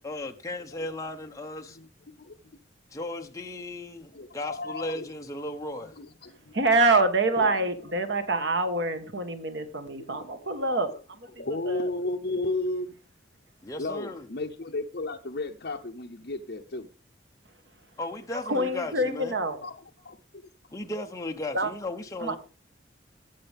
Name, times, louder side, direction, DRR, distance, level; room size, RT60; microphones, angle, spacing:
voice 1, 0.0-1.8 2.9-6.0 13.6-14.3 18.0-19.4 20.7-22.4, left 2 dB, 15° left, 0.9 m, -36 dB
voice 2, 2.2-2.6 4.1-5.1 6.0-6.5 7.4-7.6 10.0-10.6 11.4-13.0 13.8-16.9 19.6-19.7 20.0-20.2, left 2 dB, 55° left, 0.8 m, -33 dB
voice 3, 6.5-11.0 11.7-11.9 18.5-19.6 21.5-21.7 22.2-22.4, right 2 dB, 65° right, 1.5 m, -26 dB
18.0 x 8.1 x 3.5 m
head